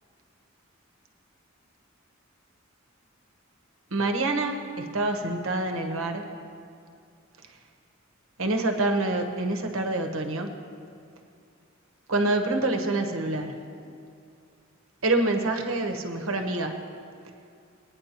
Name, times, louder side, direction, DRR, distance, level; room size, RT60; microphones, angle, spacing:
voice 1, 3.9-6.3 7.4-7.6 8.4-10.6 12.1-13.6 15.0-16.8, right 2 dB, 80° right, 5 dB, 1.0 m, -26 dB
18.5 x 9.7 x 2.9 m, 2.5 s
head